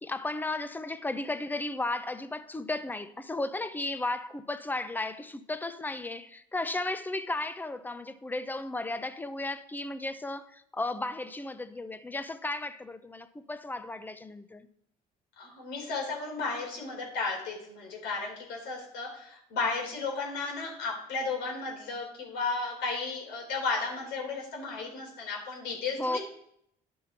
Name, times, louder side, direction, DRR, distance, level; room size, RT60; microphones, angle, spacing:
voice 1, 0.0-14.7 26.0-26.2, left 2 dB, 10° left, 0.6 m, -34 dB
voice 2, 15.4-26.2, left 4 dB, 80° left, 3.7 m, -34 dB
11.0 x 5.4 x 4.4 m
cardioid pair, 110°, 17 cm